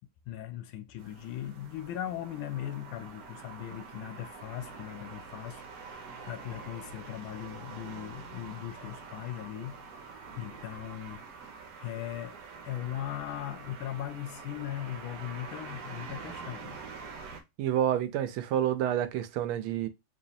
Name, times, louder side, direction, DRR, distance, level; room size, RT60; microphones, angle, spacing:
voice 1, 0.3-12.4 12.6-16.8, left 12 dB, 85° left, 1.4 m, -39 dB
sound 1, 1.0-17.4, right 4 dB, 60° right, 1.2 m, -46 dB
voice 2, 17.6-19.9, right 10 dB, 85° right, 1.5 m, -28 dB
3.9 x 3.2 x 2.6 m
omnidirectional pair, 2.2 m